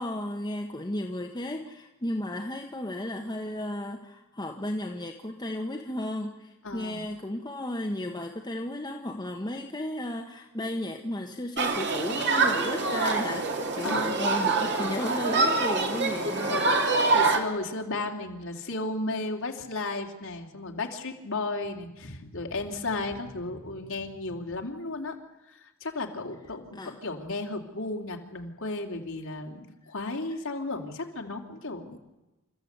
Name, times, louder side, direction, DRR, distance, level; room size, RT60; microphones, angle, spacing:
voice 1, 0.0-16.7 26.7-26.9, left 1 dB, 20° left, 3 dB, 1.2 m, -34 dB
voice 2, 6.6-7.0 13.8-15.2 16.2-25.2 25.5-32.0, left 2 dB, 65° left, 2 dB, 2.7 m, -34 dB
Human group actions, 11.6-17.4, right 3 dB, 55° right, 2.4 m, -25 dB
28.5 x 13.5 x 8.1 m, 1.1 s
head